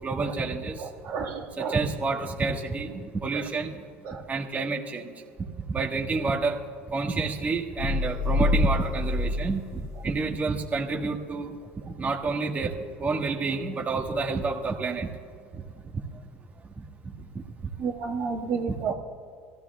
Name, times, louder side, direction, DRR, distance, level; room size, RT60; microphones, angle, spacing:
voice 1, 0.0-0.8 1.6-3.7 4.3-5.1 5.7-6.6 6.9-9.7 10.0-11.5 11.8-12.7 13.0-15.1, right 4 dB, 25° right, 0 dB, 1.6 m, -28 dB
voice 2, 1.0-1.8 4.1-4.2 17.8-18.9, right 5 dB, 60° right, -1 dB, 1.7 m, -30 dB
sound 1, 7.8-10.3 10.7-10.8, left 3 dB, 60° left, 0.7 m, -27 dB
24.0 x 15.0 x 2.3 m, 2.2 s
hypercardioid pair, 85°, 6 cm